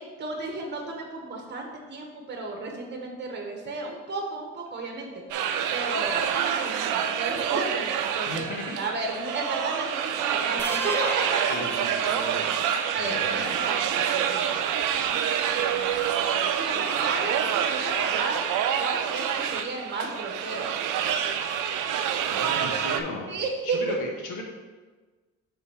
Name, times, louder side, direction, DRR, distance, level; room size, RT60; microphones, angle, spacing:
voice 1, 0.0-5.1 5.7-11.6 12.0-12.2 12.9-14.7 15.7-16.1 16.5-18.4 18.8-20.7 23.3-24.0, right 3 dB, 35° right, 2 dB, 1.2 m, -33 dB
sound 1, 5.3-23.0, right 8 dB, 85° right, 0.5 m, -27 dB
voice 2, 8.3-8.8 11.4-12.5 12.9-13.6 22.3-23.3 23.6-24.4, left 2 dB, 90° left, 1 dB, 1.2 m, -36 dB
sound 2, 10.6-12.6, equal, 5° left, 0.6 m, -36 dB
5.7 x 4.0 x 4.9 m, 1.3 s
cardioid pair, 90°, 30 cm